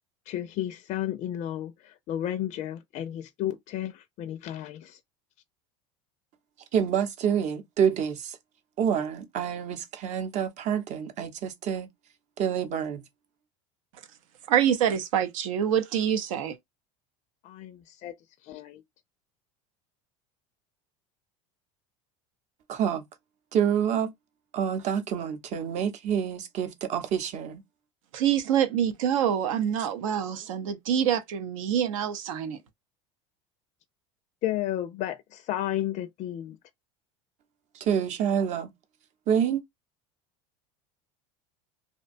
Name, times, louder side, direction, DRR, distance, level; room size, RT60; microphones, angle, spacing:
voice 1, 0.3-5.0 17.4-18.1 18.4-18.8 34.4-36.6, left 12 dB, 45° left, 0.4 m, -33 dB
voice 2, 6.7-8.4 8.8-11.9 12.4-13.0 22.7-23.0 23.5-24.1 24.5-27.6 37.7-38.7 39.3-39.6, right 8 dB, 45° right, 0.7 m, -27 dB
voice 3, 14.5-16.6 28.1-32.6, right 9 dB, 85° right, 0.6 m, -26 dB
2.6 x 2.2 x 2.4 m
supercardioid pair, 105°, 16 cm